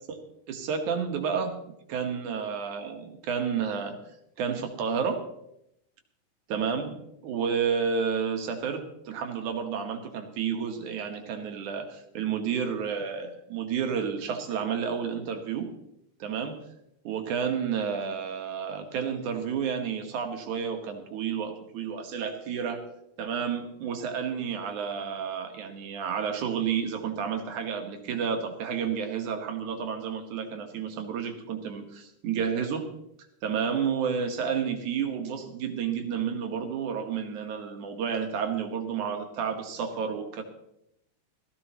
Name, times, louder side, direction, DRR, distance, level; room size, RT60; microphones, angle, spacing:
voice 1, 0.5-1.5 1.9-4.0 4.4-5.2 6.5-7.0 7.2-15.7 16.2-16.6 17.0-22.8 23.2-32.9 33.4-40.4, right 7 dB, 70° right, 5 dB, 2.7 m, -31 dB
17.0 x 15.0 x 3.0 m, 0.80 s
omnidirectional pair, 3.8 m